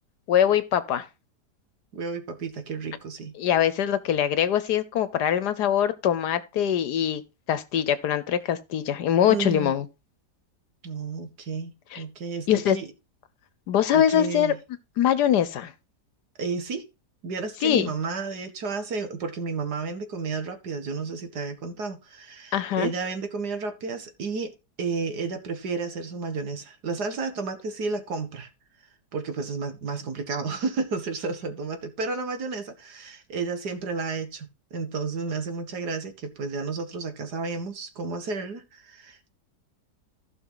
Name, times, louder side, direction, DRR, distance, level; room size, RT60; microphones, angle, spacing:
voice 1, 0.3-1.0 3.4-7.2 7.5-9.9 11.9-12.0 12.5-12.8 13.7-14.5 15.0-15.7 17.6-17.9 22.5-22.9, left 10 dB, 80° left, 1.4 m, -23 dB
voice 2, 1.9-3.3 9.3-9.8 10.8-12.9 13.9-14.6 16.4-16.8 17.2-24.5 24.8-28.5 29.1-39.3, right 4 dB, 75° right, 2.2 m, -32 dB
15.0 x 5.9 x 4.0 m
omnidirectional pair, 1.7 m